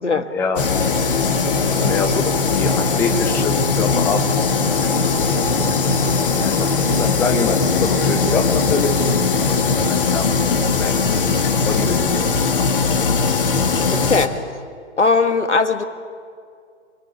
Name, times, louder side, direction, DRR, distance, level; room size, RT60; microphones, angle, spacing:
voice 1, 0.1-1.0 1.5-4.3 4.9-5.3 5.8-6.1 6.4-8.9 9.4-10.3 10.8-11.2 11.6-12.3 12.5-12.8, left 4 dB, 5° left, 5 dB, 0.7 m, -26 dB
sound 1, 0.6-14.3, left 4 dB, 45° left, 2.0 m, -19 dB
voice 2, 13.9-14.4 15.0-15.8, left 4 dB, 75° left, 8 dB, 1.9 m, -18 dB
26.0 x 21.5 x 8.3 m, 2.2 s
figure-of-eight pair, 125°, 36 cm